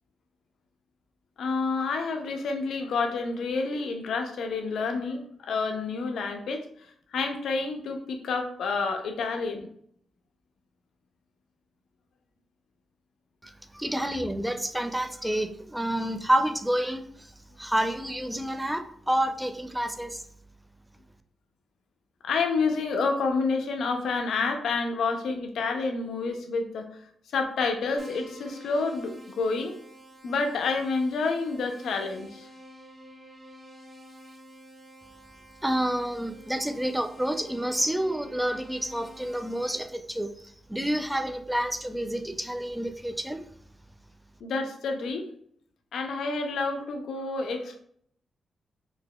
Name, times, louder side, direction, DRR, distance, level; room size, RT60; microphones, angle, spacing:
voice 1, 1.4-6.9 7.1-9.7 22.2-26.9 27.3-29.8 30.2-32.5 44.4-45.3 45.9-47.8, left 4 dB, 80° left, 5 dB, 0.5 m, -29 dB
voice 2, 13.4-17.3 17.6-20.2 35.6-43.4, right 1 dB, 5° right, 7 dB, 0.3 m, -29 dB
Keyboard (musical), 28.0-39.8, equal, 35° right, 0.9 m, -49 dB
3.9 x 2.8 x 2.3 m, 0.64 s
cardioid pair, 85°, 0 cm